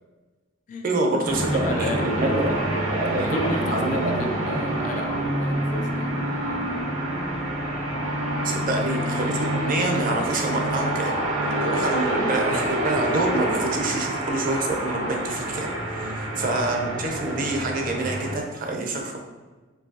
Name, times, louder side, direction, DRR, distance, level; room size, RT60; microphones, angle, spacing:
voice 1, 0.8-4.3 8.4-11.2 11.4-19.2, right 2 dB, 40° right, 2 dB, 0.5 m, -27 dB
sound 1, 1.3-18.4, right 1 dB, 80° right, 0.8 m, -27 dB
voice 2, 1.5-2.6 3.2-6.6 8.7-8.8 16.0-16.3, left 2 dB, 35° left, 3 dB, 0.3 m, -34 dB
4.6 x 2.7 x 2.7 m, 1.3 s
head